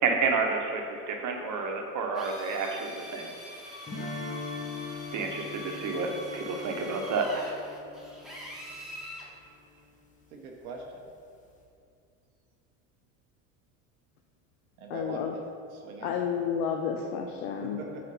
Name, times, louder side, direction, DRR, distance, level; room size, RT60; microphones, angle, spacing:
voice 1, 0.0-3.3 5.1-7.5, right 4 dB, 45° right, 2 dB, 1.0 m, -30 dB
Drill, 2.1-9.3, equal, ahead, 1.3 m, -44 dB
sound 1, 3.9-8.8, left 4 dB, 20° left, 0.9 m, -41 dB
voice 2, 10.3-10.8 14.8-15.2 15.7-16.2 17.6-18.1, right 4 dB, 90° right, 0 dB, 0.8 m, -42 dB
voice 3, 14.9-15.3 16.0-17.8, left 7 dB, 65° left, 3 dB, 0.6 m, -31 dB
4.2 x 4.2 x 5.3 m, 2.5 s
hypercardioid pair, 75°, 42 cm